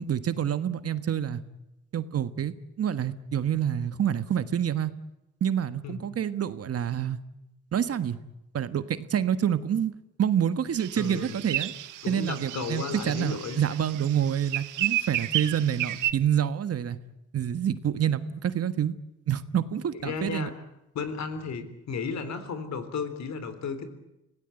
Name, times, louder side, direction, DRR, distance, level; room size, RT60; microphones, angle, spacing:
voice 1, 0.0-1.4 1.9-4.9 5.4-7.2 7.7-8.2 8.5-9.9 10.2-11.7 12.1-17.0 17.3-18.9 19.3-20.5, right 9 dB, 50° right, 12 dB, 1.5 m, -27 dB
sound 1, 10.8-16.1, right 14 dB, 85° right, 1.2 m, -32 dB
voice 2, 11.0-11.4 12.0-13.6 20.0-20.5 20.9-23.9, left 5 dB, 65° left, 10 dB, 3.7 m, -34 dB
25.5 x 17.5 x 9.2 m, 0.92 s
cardioid pair, 90°, 30 cm